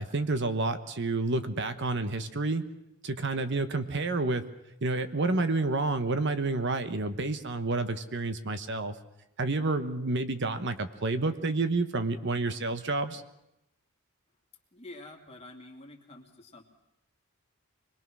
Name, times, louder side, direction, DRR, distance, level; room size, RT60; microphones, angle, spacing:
voice 1, 0.0-2.6 3.0-4.4 4.8-9.0 9.4-13.2, right 2 dB, 55° right, 10 dB, 1.1 m, -29 dB
voice 2, 14.7-16.7, left 2 dB, 30° left, 1 dB, 2.7 m, -48 dB
25.0 x 21.5 x 6.2 m, 0.85 s
head